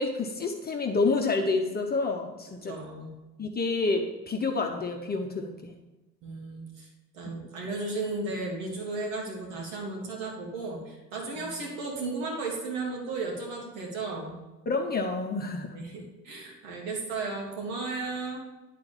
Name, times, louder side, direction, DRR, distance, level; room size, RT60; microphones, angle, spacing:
voice 1, 0.0-2.8 3.4-5.7 7.2-7.4 11.4-11.5 14.7-15.8, left 3 dB, 20° left, 3 dB, 0.8 m, -29 dB
voice 2, 2.7-3.1 6.2-6.9 7.1-14.3 15.7-18.4, right 3 dB, 55° right, 0 dB, 2.6 m, -34 dB
10.5 x 4.2 x 7.1 m, 1.1 s
figure-of-eight pair, 70°, 48 cm